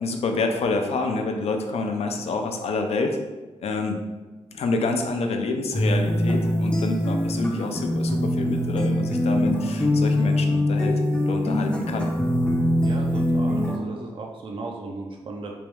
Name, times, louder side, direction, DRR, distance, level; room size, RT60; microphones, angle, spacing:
voice 1, 0.0-3.2 3.6-4.0 4.5-11.0 11.3-12.1, left 3 dB, 70° left, 4 dB, 0.5 m, -27 dB
sound 1, 5.7-13.8, left 1 dB, 10° left, 0.5 m, -23 dB
voice 2, 12.8-15.6, right 3 dB, 50° right, 0 dB, 0.5 m, -36 dB
3.5 x 3.0 x 3.4 m, 1.2 s
wide cardioid pair, 110°, 11 cm